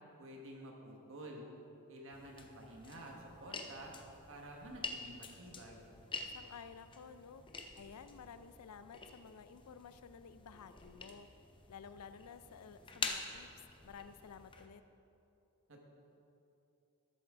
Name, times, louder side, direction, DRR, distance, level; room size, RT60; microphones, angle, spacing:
voice 1, 0.2-1.4 1.9-3.9 4.3-5.9 15.7-15.9, right 1 dB, 60° right, 1 dB, 1.4 m, -50 dB
sound 1, 2.1-14.7, left 4 dB, 20° left, 0.6 m, -47 dB
voice 2, 6.3-7.4 7.8-11.3 11.7-13.5 13.8-14.8, left 6 dB, 85° left, 12 dB, 0.4 m, -53 dB
12.5 x 7.3 x 3.7 m, 2.9 s
head